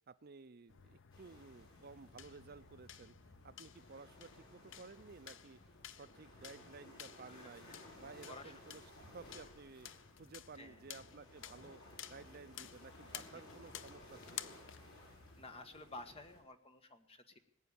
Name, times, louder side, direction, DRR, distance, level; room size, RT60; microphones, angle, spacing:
voice 1, 0.1-3.1 3.4-5.6 5.9-7.7 8.0-8.8 9.1-9.9 10.2-11.8 12.1-14.5, right 4 dB, 50° right, 14 dB, 0.6 m, -55 dB
sound 1, 0.7-15.5, left 10 dB, 60° left, 0.7 m, -54 dB
sound 2, 1.1-16.4, left 1 dB, 75° left, 7.8 m, -59 dB
voice 2, 7.3-7.9 8.2-8.6 10.5-10.8 15.4-17.4, left 2 dB, 30° left, 7 dB, 1.5 m, -53 dB
20.0 x 9.2 x 7.1 m, 0.72 s
head